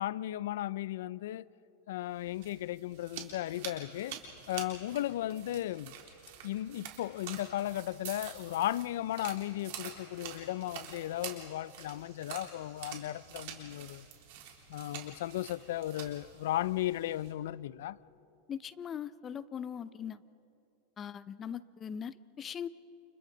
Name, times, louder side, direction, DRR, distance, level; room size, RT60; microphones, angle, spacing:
voice 1, 0.0-1.5 1.9-4.2 4.5-5.9 6.4-14.0 14.7-18.0, left 14 dB, 70° left, 0.5 m, -35 dB
sound 1, 2.1-17.3, right 8 dB, 60° right, 3.8 m, -47 dB
voice 2, 18.5-20.2 21.0-22.7, left 8 dB, 20° left, 0.5 m, -40 dB
29.5 x 29.5 x 4.0 m
supercardioid pair, 160°, 0 cm